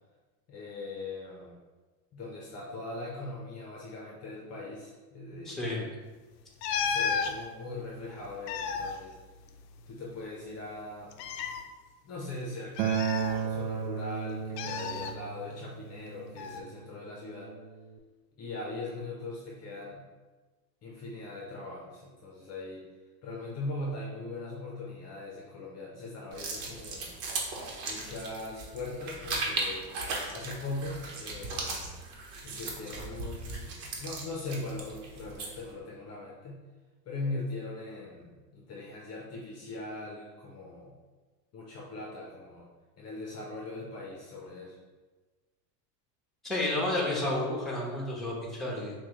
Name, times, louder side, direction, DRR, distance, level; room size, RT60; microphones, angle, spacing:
voice 1, 0.5-1.5 2.1-5.7 6.8-9.2 9.9-11.1 12.0-17.5 18.4-20.0 20.8-22.8 23.2-27.1 27.8-29.9 30.3-31.9 32.4-36.6 37.1-40.9 41.5-42.7 43.0-44.8, left 2 dB, 30° left, -3 dB, 0.8 m, -40 dB
voice 2, 5.4-5.9 46.4-48.9, left 1 dB, ahead, -3 dB, 1.1 m, -31 dB
sound 1, 6.6-7.3 8.2-9.9 10.2-10.3 11.1-11.6 12.8-13.8 14.6-15.1 16.4-16.6, left 6 dB, 75° left, 0.6 m, -33 dB
Acoustic guitar, 12.8-18.0, right 7 dB, 75° right, 0.6 m, -34 dB
sound 2, 26.3-35.7, right 3 dB, 55° right, 1.2 m, -37 dB
5.8 x 2.4 x 3.1 m, 1.3 s
hypercardioid pair, 105°, 49 cm